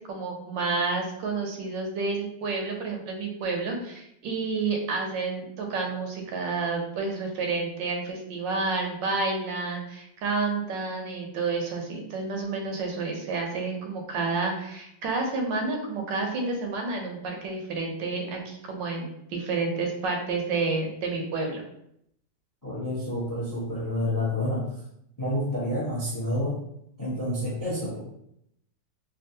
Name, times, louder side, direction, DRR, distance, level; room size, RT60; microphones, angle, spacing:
voice 1, 0.1-21.6, right 3 dB, 85° right, 2 dB, 1.4 m, -30 dB
voice 2, 22.6-24.7 25.2-26.6 27.0-28.0, left 1 dB, 20° left, -7 dB, 0.5 m, -29 dB
3.5 x 2.3 x 2.6 m, 0.75 s
omnidirectional pair, 1.9 m